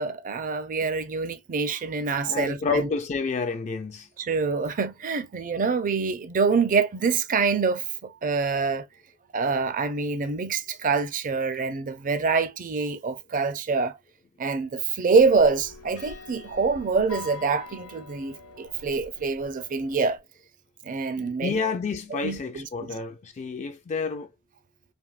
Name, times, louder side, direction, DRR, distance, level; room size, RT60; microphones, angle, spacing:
voice 1, 0.0-2.9 4.2-8.9 9.3-14.0 14.4-20.2 20.8-21.7 22.1-22.9, right 4 dB, 35° right, 0.4 m, -25 dB
voice 2, 2.3-4.1 21.2-24.3, left 4 dB, 30° left, 0.3 m, -29 dB
sound 1, 15.2-20.2, left 4 dB, 85° left, 0.6 m, -44 dB
3.4 x 2.6 x 2.3 m
head